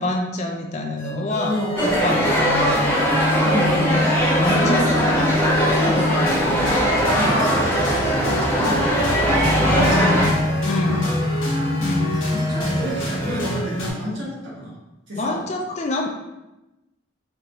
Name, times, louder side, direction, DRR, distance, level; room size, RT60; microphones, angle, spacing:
voice 1, 0.0-3.2 3.5-4.1 4.4-5.5 5.9-6.1 9.9-10.4 10.7-11.1 11.8-12.2 15.2-16.1, left 2 dB, 35° left, 1 dB, 0.4 m, -27 dB
sound 1, 1.0-13.9, left 1 dB, 85° left, 1.2 m, -26 dB
voice 2, 1.4-1.9 3.4-3.9 4.5-5.2 5.7-9.1 9.6-10.1 10.9-11.1 12.2-14.8 15.1-15.4, equal, 65° right, -6 dB, 1.4 m, -29 dB
sound 2, 1.8-10.3, equal, 10° left, 0.9 m, -20 dB
sound 3, 7.0-13.6, right 1 dB, 20° right, 0.8 m, -29 dB
4.5 x 2.6 x 3.0 m, 0.98 s
head